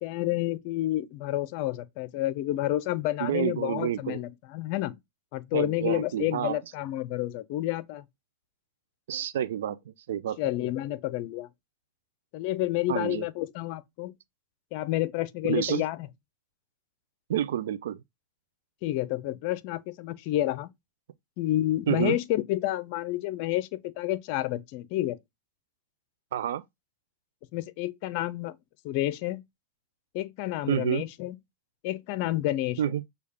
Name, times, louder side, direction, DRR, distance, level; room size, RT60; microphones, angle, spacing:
voice 1, 0.0-5.0 5.3-8.0 10.4-11.5 12.3-14.1 14.7-16.0 18.8-20.7 21.4-25.2 27.5-28.6 28.8-29.4 30.1-31.4 31.8-32.8, left 15 dB, 55° left, 0.6 m, -29 dB
voice 2, 3.2-4.2 5.5-6.6 9.1-10.4 12.9-13.3 15.4-15.8 17.3-18.0 21.9-22.2 26.3-26.6 30.7-31.0 32.8-33.0, right 10 dB, 75° right, 0.4 m, -29 dB
6.3 x 2.3 x 3.5 m
hypercardioid pair, 105°, 0 cm